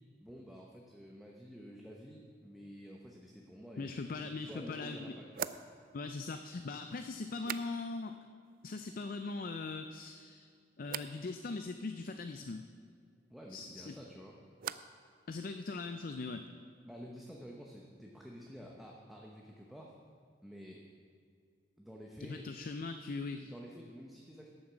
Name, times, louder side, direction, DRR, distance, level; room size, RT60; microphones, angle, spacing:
voice 1, 0.2-5.5 13.3-14.4 16.8-20.0 20.4-20.8 21.8-22.4 23.5-24.5, equal, ahead, -2 dB, 0.9 m, -50 dB
voice 2, 3.8-5.0 5.9-8.1 8.6-10.5 10.8-12.7 13.5-13.9 15.3-16.5 22.2-23.5, left 3 dB, 50° left, 7 dB, 0.4 m, -40 dB
sound 1, 4.1-4.2 5.3-8.2 8.4-9.0 9.4-10.0 10.8-11.2 13.6-15.1 15.3-15.9, right 9 dB, 50° right, 0.4 m, -46 dB
11.5 x 7.2 x 7.2 m, 2.2 s
head